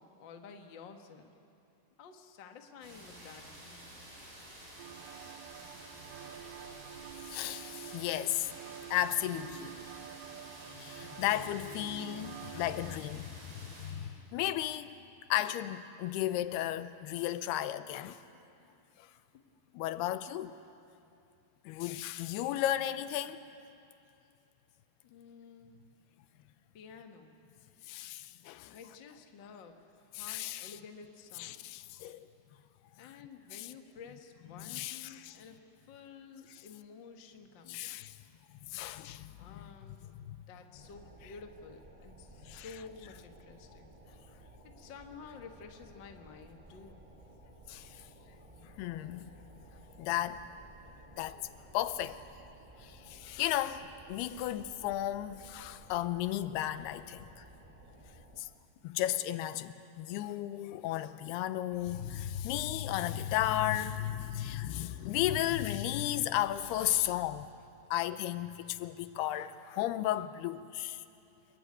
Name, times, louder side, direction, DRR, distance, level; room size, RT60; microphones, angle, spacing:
voice 1, 0.0-1.3 2.0-4.0 18.6-18.8 19.7-19.8 25.0-25.7 26.7-27.3 28.7-29.8 30.1-31.7 33.0-35.6 35.9-38.1 39.4-40.0 40.5-43.9 44.6-47.1 58.3-58.4, left 5 dB, 50° left, 1.3 m, -51 dB
sound 1, 2.8-13.9, right 1 dB, 55° right, 9.2 m, -51 dB
sound 2, 4.8-13.0, right 12 dB, 75° right, 2.0 m, -48 dB
voice 2, 7.3-8.5 8.9-9.8 10.8-14.9 15.3-18.2 19.7-20.6 21.7-23.5 27.9-28.7 30.1-30.7 31.4-32.3 33.0-33.1 33.5-33.7 34.5-35.4 36.5-36.6 37.7-38.1 38.7-39.7 40.0-40.4 42.4-42.7 47.7-48.0 48.6-49.3 50.0-50.5 51.2-51.5 51.7-52.2 52.8-57.4 58.4-58.5 58.8-67.5 67.9-71.0, left 13 dB, 85° left, 2.8 m, -34 dB
sound 3, 40.7-58.4, right 1 dB, 15° right, 1.3 m, -56 dB
27.5 x 22.0 x 9.7 m
omnidirectional pair, 4.5 m